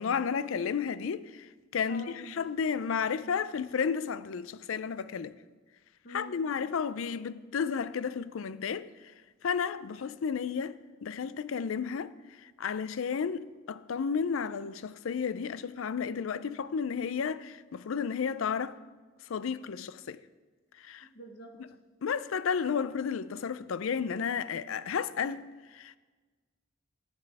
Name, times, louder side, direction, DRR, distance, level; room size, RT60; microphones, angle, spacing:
voice 1, 0.0-1.5 1.7-5.4 6.1-8.9 9.4-12.1 12.4-18.8 19.3-20.2 20.8-21.1 22.0-25.5 25.7-25.9, left 6 dB, 80° left, 0.4 m, -32 dB
voice 2, 1.9-2.2 6.0-6.4 21.1-21.6, left 1 dB, 50° left, 1.4 m, -45 dB
11.5 x 9.0 x 4.7 m
head